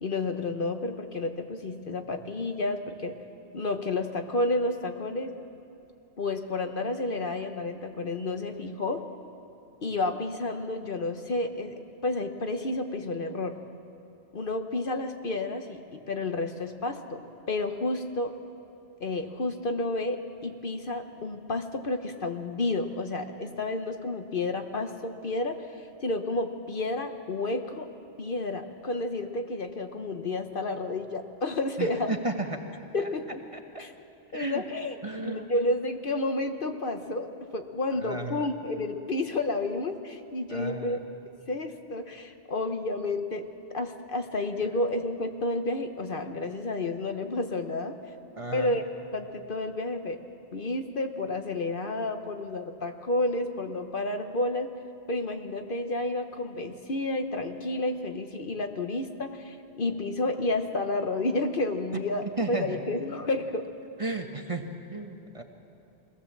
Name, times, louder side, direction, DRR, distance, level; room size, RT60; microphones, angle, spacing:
voice 1, 0.0-3.2 3.5-5.3 6.2-9.0 9.8-13.6 14.3-18.3 19.0-27.9 28.2-32.1 32.9-33.4 33.8-33.9 34.3-41.0 41.5-43.5 43.7-48.0 48.5-48.8 49.1-50.2 50.5-54.7 55.1-63.7, left 2 dB, 50° left, 6 dB, 1.1 m, -31 dB
voice 2, 31.8-32.6 33.5-33.6 34.3-34.6 35.0-35.5 38.0-38.5 40.5-41.0 48.4-48.7 62.4-62.8 64.0-65.4, right 2 dB, 30° right, 4 dB, 1.2 m, -33 dB
23.0 x 17.0 x 7.3 m, 2.7 s
omnidirectional pair, 1.2 m